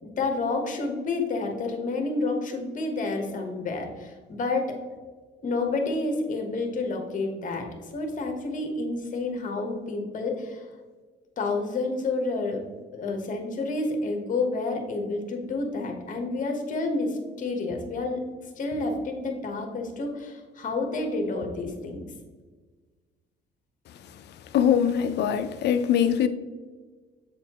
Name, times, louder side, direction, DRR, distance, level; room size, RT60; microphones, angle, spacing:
voice 1, 0.0-4.7 5.4-10.7 11.4-12.6 12.9-18.3 18.6-22.0, left 3 dB, 45° left, 4 dB, 1.1 m, -29 dB
voice 2, 24.5-26.3, left 9 dB, 65° left, 10 dB, 0.5 m, -22 dB
7.8 x 4.2 x 3.0 m, 1.4 s
cardioid pair, 130°, 19 cm